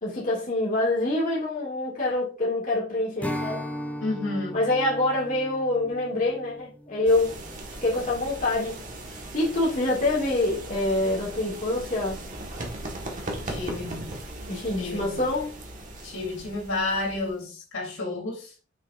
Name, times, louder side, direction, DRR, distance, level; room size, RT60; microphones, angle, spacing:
voice 1, 0.0-3.6 4.5-7.3 7.8-8.8 9.3-12.2 14.5-15.5, left 2 dB, 45° left, 2.3 m, -26 dB
Strum, 3.2-8.6, equal, 10° left, 0.8 m, -38 dB
voice 2, 4.0-4.6 13.5-14.1 14.8-15.2 16.0-18.5, left 2 dB, 85° left, 3.0 m, -31 dB
sound 1, 7.1-17.4, right 1 dB, 40° right, 1.5 m, -38 dB
6.3 x 6.1 x 2.5 m
head